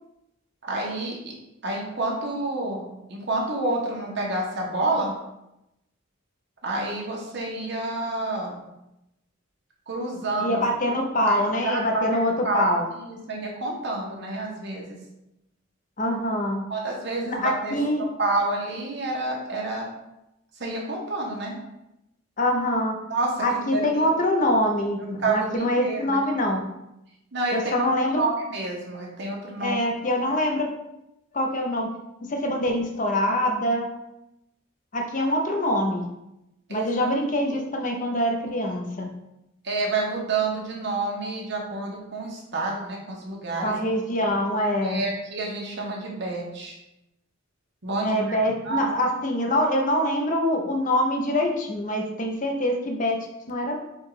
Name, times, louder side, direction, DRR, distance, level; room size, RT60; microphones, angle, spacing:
voice 1, 0.6-1.3 1.6-5.2 6.6-8.6 9.9-10.6 11.2-15.0 16.7-17.8 18.2-19.9 20.6-21.5 23.1-23.4 23.7-24.0 25.2-26.2 27.3-27.9 28.1-29.8 36.7-37.1 39.6-43.7 44.8-46.8 47.8-48.9, right 2 dB, 55° right, -2 dB, 1.1 m, -29 dB
voice 2, 10.4-12.9 16.0-16.6 17.3-18.0 22.4-23.0 23.4-26.6 27.5-28.2 29.6-30.7 31.3-31.9 32.2-34.0 34.9-36.0 36.7-39.1 43.6-45.1 48.0-53.8, left 1 dB, 40° left, 2 dB, 0.6 m, -24 dB
4.6 x 2.4 x 4.7 m, 0.89 s
head